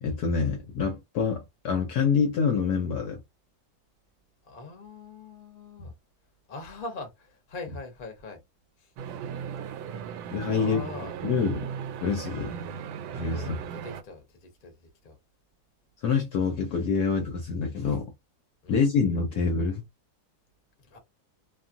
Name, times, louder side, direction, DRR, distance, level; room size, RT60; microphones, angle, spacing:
voice 1, 0.0-3.2 5.8-5.9 10.3-10.8 11.2-11.7 12.0-12.5 13.1-13.5 16.0-18.1 18.7-19.8, left 5 dB, 65° left, 1.0 m, -26 dB
voice 2, 4.4-5.9 6.5-8.4 8.8-8.9 10.5-11.2 13.3-15.2 18.6-18.9 20.8-21.0, left 3 dB, 40° left, 0.8 m, -42 dB
sound 1, 9.0-14.0, right 7 dB, 80° right, 1.3 m, -36 dB
2.9 x 2.3 x 2.5 m
omnidirectional pair, 2.1 m